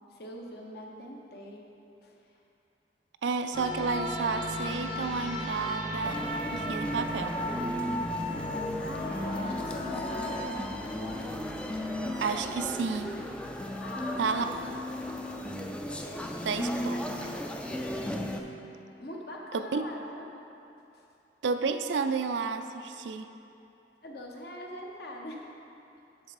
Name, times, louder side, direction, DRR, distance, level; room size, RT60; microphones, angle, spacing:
voice 1, 0.1-1.6 2.0-2.2 8.8-11.3 13.8-15.1 16.1-16.5 19.0-20.3 20.9-21.0 24.0-25.5, left 1 dB, 60° left, -1 dB, 1.0 m, -42 dB
voice 2, 3.2-6.2 6.5-7.3 12.2-13.1 14.2-14.5 16.4-17.3 19.5-19.8 21.4-23.3, right 5 dB, 80° right, 8 dB, 0.4 m, -31 dB
sound 1, 3.5-10.4, left 1 dB, 35° left, 0.8 m, -35 dB
sound 2, 6.0-18.4, left 1 dB, 5° left, 0.3 m, -36 dB
7.7 x 6.8 x 4.1 m, 2.7 s
head